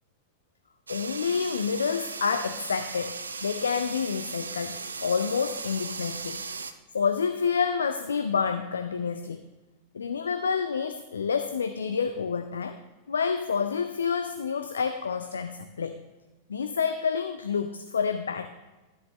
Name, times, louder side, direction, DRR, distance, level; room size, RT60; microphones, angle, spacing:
voice 1, 0.9-6.4 6.9-9.4 9.9-12.8 13.1-16.0 16.5-18.5, left 6 dB, 70° left, 8 dB, 0.4 m, -28 dB
sound 1, 0.9-6.7, right 4 dB, 75° right, 0.5 m, -37 dB
12.5 x 8.0 x 3.1 m, 1.2 s
figure-of-eight pair, 90°, 0 cm